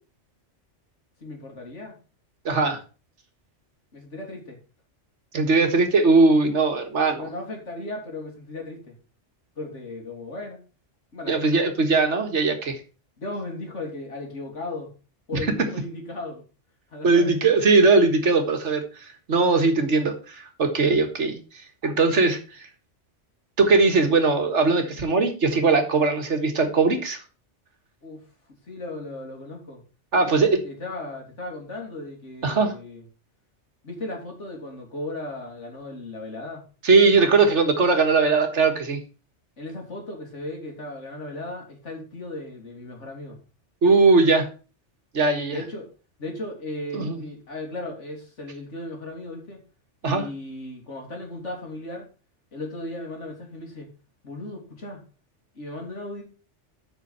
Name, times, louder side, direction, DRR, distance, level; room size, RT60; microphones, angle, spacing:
voice 1, 1.2-1.9 3.9-4.6 7.2-8.9 9.6-10.6 11.1-11.6 13.2-14.9 15.3-16.4 16.9-17.4 28.0-28.2 28.7-29.8 30.1-33.0 33.8-36.6 39.6-43.4 45.5-45.9 46.2-49.6 50.0-52.1 52.5-53.9 54.2-55.0 55.5-56.2, left 2 dB, 75° left, 1 dB, 3.2 m, -36 dB
voice 2, 2.5-2.8 5.3-7.3 11.3-12.8 17.0-22.7 23.6-27.2 30.1-30.6 32.4-32.7 36.8-39.0 43.8-44.5 45.1-45.6 46.9-47.2 50.0-50.2, right 3 dB, 75° right, 6 dB, 1.9 m, -20 dB
8.2 x 6.2 x 5.6 m, 0.35 s
omnidirectional pair, 1.2 m